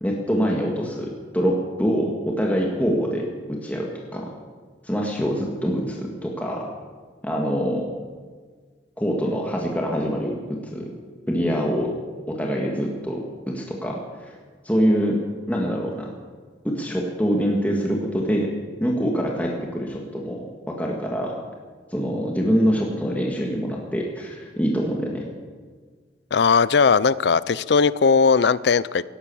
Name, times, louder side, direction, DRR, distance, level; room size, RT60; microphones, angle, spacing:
voice 1, 0.0-4.3 4.8-6.7 7.2-7.9 9.0-10.9 11.3-11.9 12.3-14.3 14.6-15.2 15.5-16.1 16.6-18.5 18.8-21.3 21.9-25.3, equal, 10° left, -1 dB, 1.9 m, -25 dB
voice 2, 26.3-29.0, left 5 dB, 70° left, 19 dB, 0.5 m, -18 dB
17.5 x 12.0 x 7.1 m, 1.5 s
head